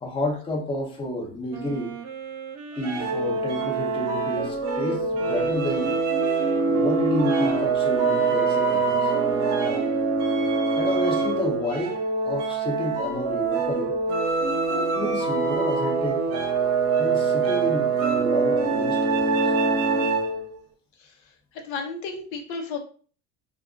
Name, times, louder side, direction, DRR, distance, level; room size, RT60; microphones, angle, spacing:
voice 1, 0.0-1.9 2.8-6.0 6.7-9.1 10.7-12.0 12.2-13.9 14.9-16.2 17.0-19.5, left 1 dB, 15° left, 0.5 m, -30 dB
Wind instrument woodwind instrument, 1.5-10.0, right 6 dB, 50° right, 0.5 m, -39 dB
sound 1, 2.8-20.5, right 4 dB, 75° right, 0.9 m, -24 dB
voice 2, 21.0-22.8, left 4 dB, 80° left, 0.8 m, -34 dB
2.4 x 2.3 x 3.6 m
cardioid pair, 140°, 31 cm